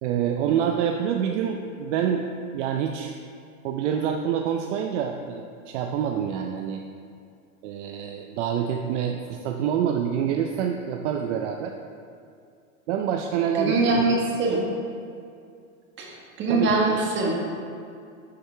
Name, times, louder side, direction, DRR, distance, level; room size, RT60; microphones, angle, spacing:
voice 1, 0.0-2.3 2.5-3.1 3.6-6.8 7.6-11.7 12.9-14.2 16.5-17.0, right 8 dB, 60° right, 4 dB, 0.6 m, -27 dB
voice 2, 13.6-14.7 16.0-17.3, right 3 dB, 25° right, -1 dB, 1.4 m, -23 dB
11.0 x 4.8 x 3.3 m, 2.4 s
supercardioid pair, 140°, 41 cm